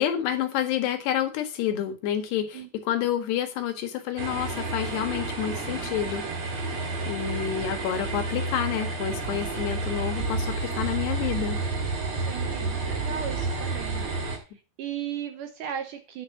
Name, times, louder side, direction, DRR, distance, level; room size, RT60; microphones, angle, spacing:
voice 1, 0.0-6.3 7.1-11.6, left 10 dB, 85° left, 7 dB, 3.8 m, -29 dB
sound 1, 4.2-14.4, right 3 dB, 45° right, 3.6 m, -30 dB
voice 2, 12.2-14.4 14.8-16.2, right 9 dB, 70° right, 8 dB, 2.1 m, -36 dB
10.5 x 6.5 x 6.5 m, 0.32 s
omnidirectional pair, 4.7 m